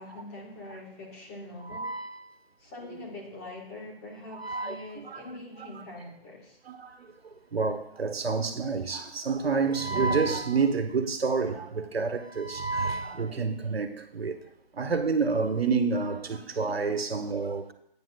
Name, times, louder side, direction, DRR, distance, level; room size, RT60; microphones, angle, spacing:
voice 1, 0.0-2.0 2.6-6.6, left 2 dB, 15° left, 1.3 m, -43 dB
voice 2, 1.6-2.2 4.3-5.2 6.7-14.4 14.7-17.7, right 4 dB, 85° right, 1.3 m, -29 dB
15.5 x 9.1 x 2.3 m
hypercardioid pair, 165°, 30 cm